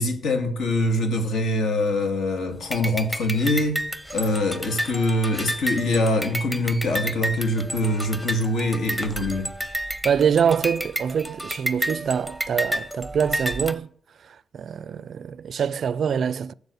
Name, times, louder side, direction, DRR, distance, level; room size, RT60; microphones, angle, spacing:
voice 1, 0.0-3.8 4.1-9.5, left 1 dB, 75° left, 2.2 m, -24 dB
sound 1, 2.7-13.7, right 1 dB, ahead, 0.7 m, -31 dB
voice 2, 10.0-13.9 14.5-16.5, right 7 dB, 55° right, 0.4 m, -24 dB
12.0 x 7.1 x 6.8 m
wide cardioid pair, 150°, 0 cm